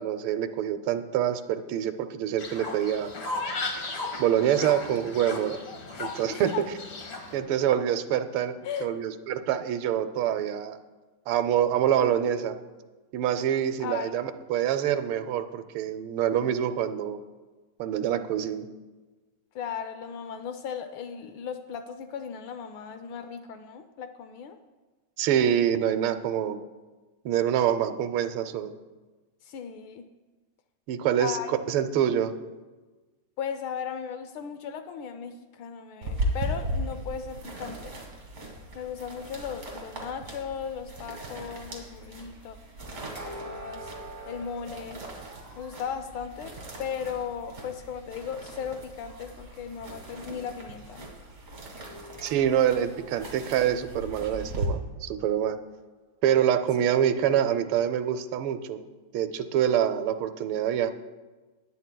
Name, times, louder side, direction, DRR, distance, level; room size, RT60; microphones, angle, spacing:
voice 1, 0.0-3.1 4.2-5.6 6.0-6.5 7.3-10.8 11.3-12.5 13.1-17.2 17.8-18.6 25.2-26.6 27.2-28.7 30.9-32.3 52.2-55.6 56.2-58.8 59.1-60.9, right 10 dB, 85° right, 10 dB, 1.5 m, -26 dB
Fowl, 2.4-7.4, left 3 dB, 50° left, 1.7 m, -36 dB
voice 2, 6.3-6.6 8.6-8.9 13.8-14.1 19.5-24.6 29.4-30.1 31.2-31.5 33.4-38.0 38.7-42.6 43.4-43.9 44.3-45.0 45.6-51.0, left 7 dB, 75° left, 9 dB, 1.3 m, -36 dB
sound 1, 36.0-54.7, right 1 dB, 45° right, 2.3 m, -38 dB
sound 2, 43.1-45.8 51.8-55.8, right 1 dB, 20° right, 1.8 m, -46 dB
19.5 x 9.4 x 2.2 m, 1.3 s
omnidirectional pair, 2.3 m